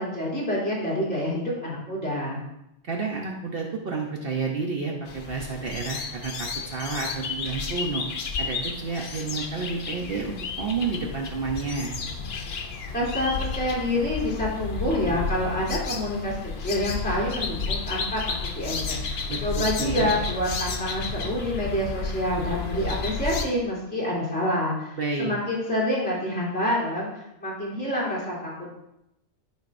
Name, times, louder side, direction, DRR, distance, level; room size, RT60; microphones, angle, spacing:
voice 1, 0.0-2.4 12.9-28.7, left 1 dB, 10° left, -7 dB, 2.9 m, -27 dB
voice 2, 2.8-8.0 8.4-11.9 19.3-20.1 25.0-25.3, right 4 dB, 55° right, 0 dB, 1.0 m, -30 dB
sound 1, 5.1-23.4, left 4 dB, 60° left, 0.9 m, -32 dB
12.0 x 5.1 x 2.6 m, 0.84 s
omnidirectional pair, 1.2 m